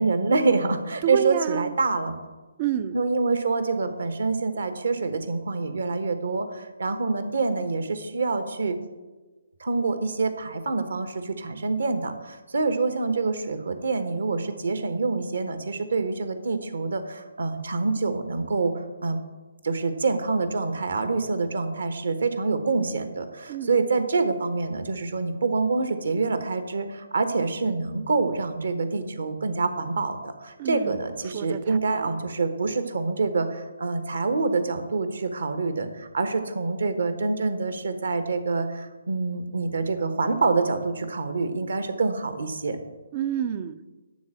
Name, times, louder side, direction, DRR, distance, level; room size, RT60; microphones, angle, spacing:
voice 1, 0.0-2.1 2.9-8.8 9.6-19.2 19.6-42.8, right 3 dB, 55° right, 9 dB, 1.1 m, -26 dB
voice 2, 1.0-1.7 2.6-3.0 23.5-23.7 30.6-31.0 31.3-32.1 43.1-43.8, right 10 dB, 30° right, 14 dB, 0.5 m, -29 dB
11.5 x 4.0 x 7.7 m, 1.2 s
figure-of-eight pair, 140°, 0 cm